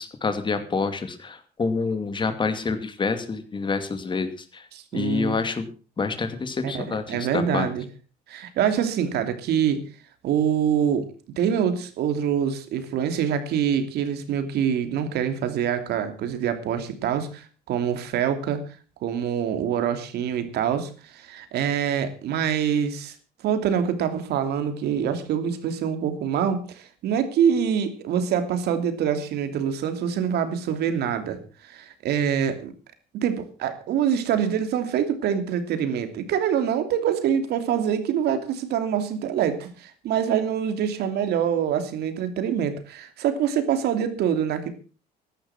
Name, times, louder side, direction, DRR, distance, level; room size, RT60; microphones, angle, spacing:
voice 1, 0.0-4.7 4.9-5.7 6.0-7.7, left 4 dB, 30° left, 9 dB, 2.5 m, -27 dB
voice 2, 4.7-5.4 6.6-7.8 8.3-9.8 10.2-11.1 11.4-18.6 19.0-23.1 23.4-32.7 33.1-44.7, right 8 dB, 75° right, 8 dB, 2.9 m, -25 dB
14.5 x 11.5 x 5.9 m, 0.36 s
cardioid pair, 110°, 17 cm